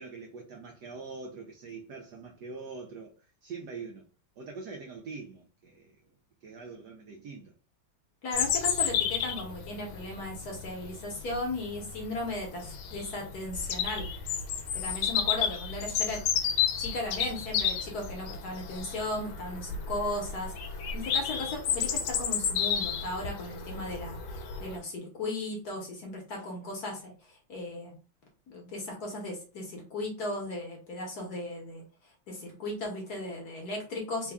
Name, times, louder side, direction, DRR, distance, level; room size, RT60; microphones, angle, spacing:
voice 1, 0.0-4.0 4.4-6.0 6.4-7.5, right 4 dB, 85° right, 0.9 m, -43 dB
voice 2, 8.2-14.1 14.7-16.2 16.8-27.9 28.5-31.8 32.3-34.3, left 2 dB, 55° left, 1.2 m, -36 dB
Bird vocalization bird call bird song, 8.3-24.8, left 7 dB, 75° left, 1.3 m, -32 dB
4.0 x 2.2 x 3.4 m
omnidirectional pair, 2.4 m